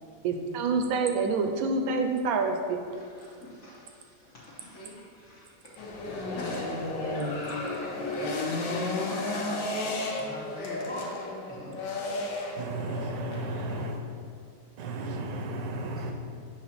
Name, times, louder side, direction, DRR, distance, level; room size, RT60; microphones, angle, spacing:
voice 1, 0.2-2.8, right 4 dB, 70° right, 5 dB, 0.9 m, -27 dB
voice 2, 2.9-5.7 6.1-9.4 10.8-10.9 13.7-14.0, left 1 dB, 55° left, -8 dB, 1.3 m, -44 dB
sound 1, 5.8-13.8, left 2 dB, 90° left, 1.5 m, -33 dB
voice 3, 10.1-11.1 11.5-11.7 16.0-16.1, equal, 10° right, -6 dB, 0.8 m, -40 dB
voice 4, 12.6-14.0 14.8-16.1, right 2 dB, 90° right, 4 dB, 1.4 m, -34 dB
7.4 x 3.0 x 5.7 m, 2.2 s
omnidirectional pair, 1.9 m